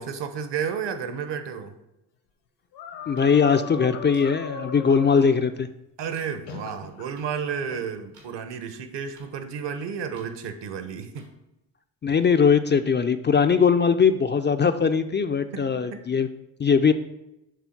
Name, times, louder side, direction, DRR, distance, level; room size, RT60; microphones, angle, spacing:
voice 1, 0.0-1.7 6.0-11.3 15.5-16.0, right 7 dB, 60° right, 10 dB, 1.0 m, -32 dB
sound 1, 2.7-5.3 6.5-7.1 7.7-7.9, left 5 dB, 90° left, 1.4 m, -38 dB
voice 2, 3.1-5.7 12.0-16.3 16.6-16.9, left 6 dB, 25° left, 9 dB, 0.3 m, -20 dB
sound 2, 3.2-3.3 4.1-4.3 5.2-5.3 6.1-6.2 7.2-7.3 8.1-8.3 9.1-9.3 10.1-10.3 11.1-11.3, right 3 dB, 85° right, 2.1 m, -53 dB
7.1 x 3.6 x 5.7 m, 0.90 s
supercardioid pair, 60°, 48 cm